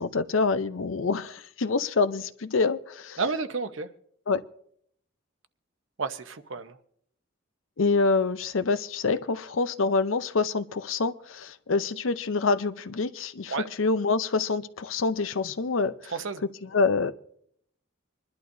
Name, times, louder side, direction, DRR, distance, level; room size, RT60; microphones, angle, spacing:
voice 1, 0.0-3.2 4.3-4.4 7.8-16.1 16.6-17.1, left 4 dB, 80° left, 0.6 m, -26 dB
voice 2, 3.2-3.9 6.0-6.8 13.5-13.7 16.1-16.4, right 4 dB, 75° right, 0.9 m, -31 dB
26.0 x 11.5 x 2.7 m
head